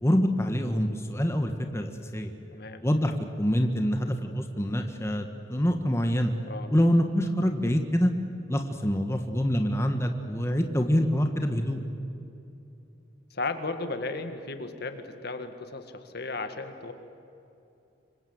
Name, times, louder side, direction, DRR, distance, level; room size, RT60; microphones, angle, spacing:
voice 1, 0.0-2.3 2.8-3.1 3.4-6.3 6.7-8.1 8.5-11.8, equal, 15° left, 5 dB, 1.4 m, -25 dB
voice 2, 2.5-2.8 6.5-6.7 13.3-16.9, left 3 dB, 60° left, 8 dB, 2.0 m, -35 dB
26.5 x 25.0 x 8.0 m, 2.8 s
head